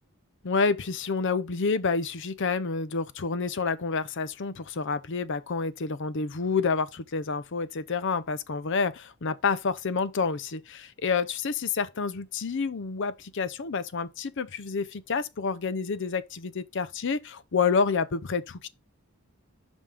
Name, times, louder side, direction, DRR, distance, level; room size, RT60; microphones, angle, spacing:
voice 1, 0.4-18.7, left 4 dB, 60° left, 0.6 m, -29 dB
5.5 x 5.4 x 4.8 m
head